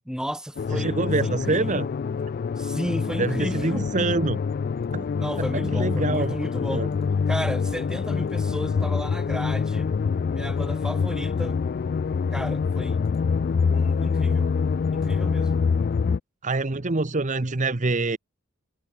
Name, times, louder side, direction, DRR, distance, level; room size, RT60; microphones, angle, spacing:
voice 1, 0.1-1.9 2.6-3.9 5.2-6.9 7.3-9.9 10.3-11.6 12.3-13.0 13.7-14.5 14.9-15.6, equal, 5° right, 4.3 m, -33 dB
sound 1, 0.6-16.2, left 5 dB, 45° left, 0.3 m, -25 dB
voice 2, 0.7-1.9 3.2-4.4 4.9-5.1 5.5-6.3 6.7-6.9 16.4-18.2, right 3 dB, 35° right, 1.0 m, -25 dB
head